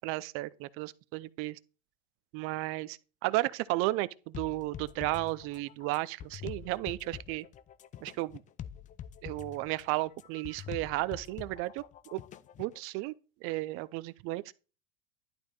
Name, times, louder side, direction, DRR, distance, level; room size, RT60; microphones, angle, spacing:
voice 1, 0.0-1.6 2.3-7.5 8.0-8.4 9.2-11.8 12.1-12.2 12.6-13.1 13.4-14.5, right 19 dB, 50° right, 0.6 m, -33 dB
sound 1, 4.3-12.8, left 9 dB, 25° left, 0.5 m, -45 dB
11.5 x 4.8 x 3.9 m
hypercardioid pair, 105°, 29 cm